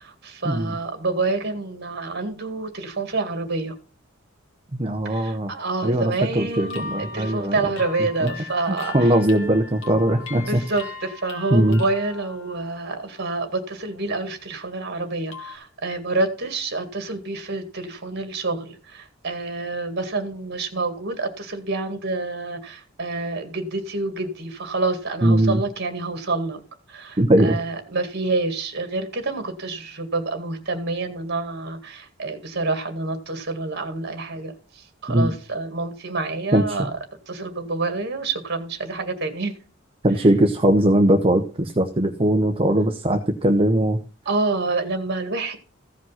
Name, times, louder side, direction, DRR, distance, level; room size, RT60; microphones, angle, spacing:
voice 1, 0.0-3.7 5.0-9.1 10.1-26.6 26.9-36.9 37.3-39.5 44.3-45.6, right 3 dB, 55° right, 2.0 m, -28 dB
voice 2, 4.8-5.5 5.8-7.6 8.2-8.3 8.7-10.6 11.5-11.8 25.2-25.6 27.2-27.6 35.1-35.3 36.5-36.8 40.0-44.0, right 1 dB, 30° right, 0.8 m, -20 dB
sound 1, 6.5-13.4 13.8-14.2 15.3-15.5, left 4 dB, 65° left, 2.7 m, -39 dB
15.5 x 5.2 x 5.7 m
head